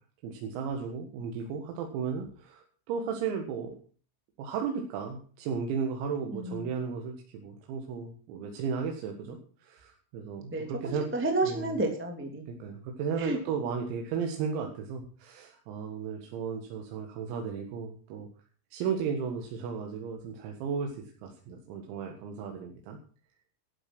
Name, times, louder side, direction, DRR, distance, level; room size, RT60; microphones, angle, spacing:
voice 1, 0.2-3.7 4.4-11.1 11.4-11.8 12.5-18.3 18.7-21.0 21.2-23.0, right 6 dB, 90° right, 2 dB, 4.6 m, -35 dB
voice 2, 6.3-6.7 10.5-12.5 13.2-13.4, right 2 dB, 5° right, 3 dB, 1.0 m, -31 dB
12.5 x 12.0 x 6.1 m, 0.41 s
omnidirectional pair, 6.0 m